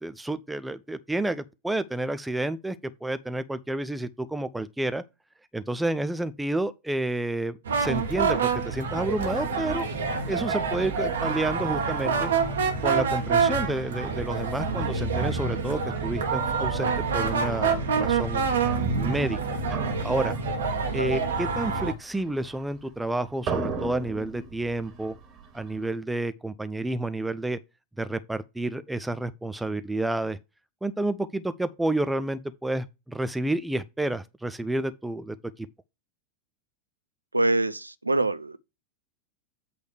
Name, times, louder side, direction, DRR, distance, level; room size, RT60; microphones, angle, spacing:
voice 1, 0.0-2.8 3.0-5.0 5.5-9.8 10.3-12.3 12.8-18.5 19.0-19.4 20.0-20.4 20.9-25.1 25.5-27.6 28.0-30.4 30.8-35.7, right 2 dB, 5° right, 0.5 m, -30 dB
sound 1, 7.7-21.9, right 5 dB, 65° right, 1.5 m, -27 dB
sound 2, 17.3-17.6 18.2-19.4 19.7-23.1 23.4-26.0, right 5 dB, 30° right, 1.8 m, -37 dB
voice 2, 37.3-38.6, right 2 dB, 85° right, 0.5 m, -25 dB
8.4 x 3.3 x 6.3 m
figure-of-eight pair, 90°, 0 cm